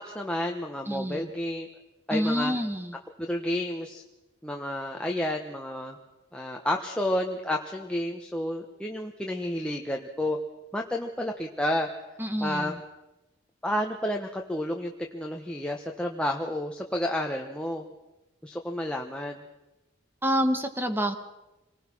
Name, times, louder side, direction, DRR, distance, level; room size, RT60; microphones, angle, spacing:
voice 1, 0.0-1.7 2.1-2.5 3.2-4.0 4.4-6.0 6.3-10.4 10.7-11.9 12.4-12.7 13.6-17.9 18.4-19.4, left 1 dB, 5° left, 1 dB, 1.2 m, -30 dB
voice 2, 0.9-1.3 2.1-3.0 12.2-12.8 20.2-21.2, equal, 10° right, 7 dB, 1.5 m, -27 dB
27.0 x 19.5 x 6.2 m, 1.0 s
head